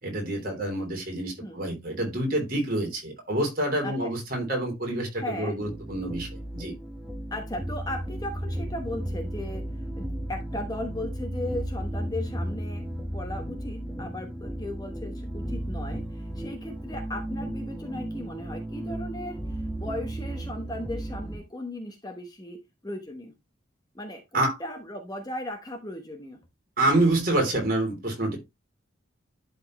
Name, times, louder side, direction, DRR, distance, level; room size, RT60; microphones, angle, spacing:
voice 1, 0.0-6.7 24.3-24.6 26.8-28.4, right 1 dB, 45° right, 3.2 m, -27 dB
voice 2, 5.1-5.6 7.3-23.3 23.9-26.4, left 1 dB, 20° left, 1.0 m, -37 dB
sound 1, 5.6-21.4, right 1 dB, 5° right, 1.4 m, -34 dB
11.5 x 4.3 x 3.1 m
head